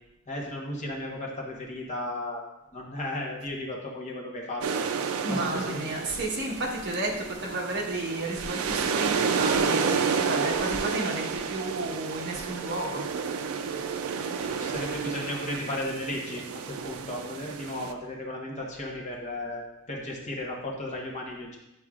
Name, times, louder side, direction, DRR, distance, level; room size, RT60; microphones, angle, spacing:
voice 1, 0.3-2.4 2.7-4.9 5.3-5.8 14.4-16.4 16.7-21.6, left 1 dB, 35° left, -1 dB, 1.1 m, -35 dB
sound 1, 4.6-17.9, right 6 dB, 80° right, 0.4 m, -30 dB
voice 2, 5.2-13.0, right 2 dB, 50° right, -1 dB, 1.1 m, -32 dB
8.9 x 4.7 x 2.4 m, 0.95 s
head